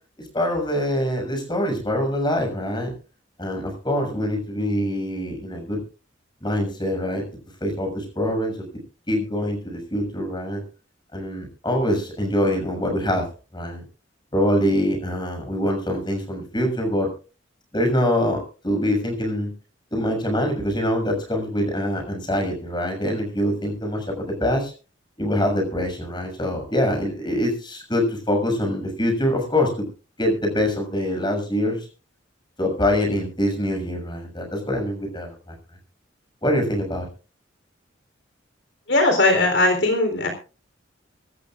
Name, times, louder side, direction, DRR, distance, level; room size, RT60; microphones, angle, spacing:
voice 1, 0.2-2.9 3.4-5.8 6.4-7.2 7.6-8.6 9.1-10.6 11.1-13.3 13.5-13.8 14.3-17.1 17.7-19.5 19.9-24.7 25.2-29.9 30.2-31.9 32.6-35.5 36.4-37.1, left 1 dB, 25° left, 3 dB, 6.6 m, -24 dB
voice 2, 38.9-40.3, left 2 dB, 65° left, 4 dB, 3.8 m, -19 dB
25.0 x 13.5 x 2.5 m, 0.36 s
head